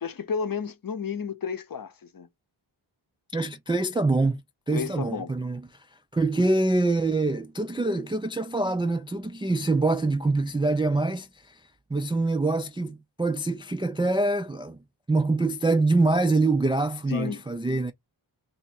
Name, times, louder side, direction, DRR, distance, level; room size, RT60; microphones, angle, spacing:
voice 1, 0.0-2.3 4.7-5.3 17.1-17.4, left 6 dB, 45° left, 0.8 m, -32 dB
voice 2, 3.3-5.9 6.1-14.8 15.1-17.9, right 2 dB, 10° right, 0.3 m, -25 dB
2.7 x 2.6 x 4.3 m
cardioid pair, 55°, 48 cm